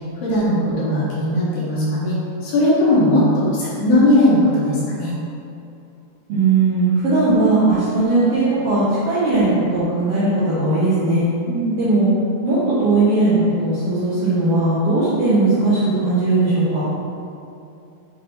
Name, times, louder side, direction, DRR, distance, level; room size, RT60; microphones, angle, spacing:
voice 1, 0.2-2.2 2.4-5.1 11.5-11.8, left 1 dB, 75° left, -8 dB, 2.3 m, -18 dB
voice 2, 6.3-11.2 11.8-12.1 12.4-16.8, right 2 dB, 75° right, -11 dB, 1.4 m, -18 dB
7.2 x 2.7 x 2.7 m, 2.6 s
omnidirectional pair, 3.8 m